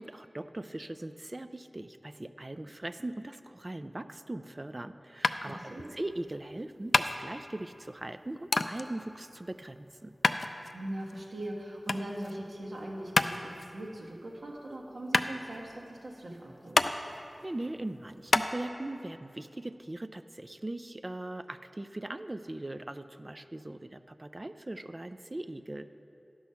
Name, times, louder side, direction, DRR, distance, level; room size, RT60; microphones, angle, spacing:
voice 1, 0.0-10.1 17.4-25.9, right 1 dB, 30° right, 11 dB, 0.3 m, -40 dB
sound 1, 5.2-18.5, left 2 dB, 60° left, 0.3 m, -31 dB
voice 2, 5.5-5.9 10.7-16.9, right 1 dB, 80° right, -1 dB, 1.5 m, -40 dB
11.5 x 6.2 x 5.6 m, 2.6 s
wide cardioid pair, 75°, 0 cm